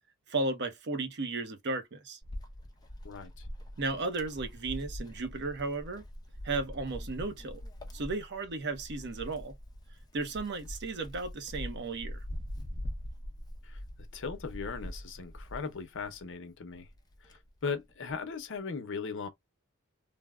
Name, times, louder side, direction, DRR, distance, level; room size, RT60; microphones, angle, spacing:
voice 1, 0.3-2.2 3.8-6.0 6.4-7.6 7.9-9.6 10.1-12.2, right 3 dB, 55° right, 0.7 m, -34 dB
Wind, 2.2-16.3 16.8-18.3, equal, 20° left, 0.7 m, -43 dB
voice 2, 3.0-3.5 13.6-13.8 14.1-16.9 17.2-19.3, left 5 dB, 60° left, 0.7 m, -38 dB
3.3 x 2.0 x 2.2 m
head